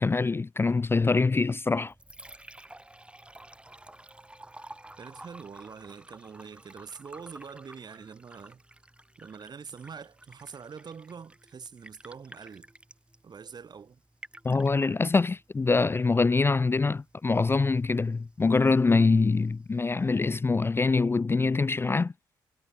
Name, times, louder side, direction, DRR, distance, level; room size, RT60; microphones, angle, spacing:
voice 1, 0.0-1.9 14.4-22.1, left 4 dB, 25° left, 0.4 m, -24 dB
Liquid, 1.7-20.7, right 1 dB, 10° right, 1.9 m, -52 dB
voice 2, 5.0-8.6 9.2-12.7 13.2-14.0, right 6 dB, 45° right, 1.6 m, -44 dB
supercardioid pair, 65°, 10 cm